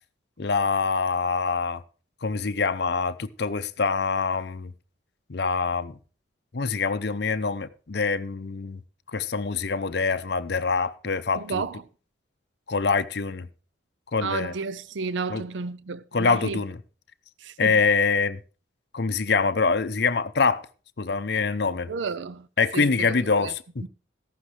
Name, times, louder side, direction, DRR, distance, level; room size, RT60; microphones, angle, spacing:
voice 1, 0.4-1.8 2.2-4.7 5.3-6.0 6.5-8.8 9.1-11.6 12.7-13.5 14.1-14.5 15.3-15.4 16.1-16.8 17.6-18.4 18.9-20.6 21.0-21.9 22.6-23.9, left 4 dB, 55° left, 0.6 m, -25 dB
voice 2, 11.3-11.8 14.2-16.6 17.4-17.8 21.9-22.5 22.7-23.5 23.8-23.9, right 4 dB, 70° right, 0.5 m, -32 dB
14.0 x 11.5 x 3.3 m
head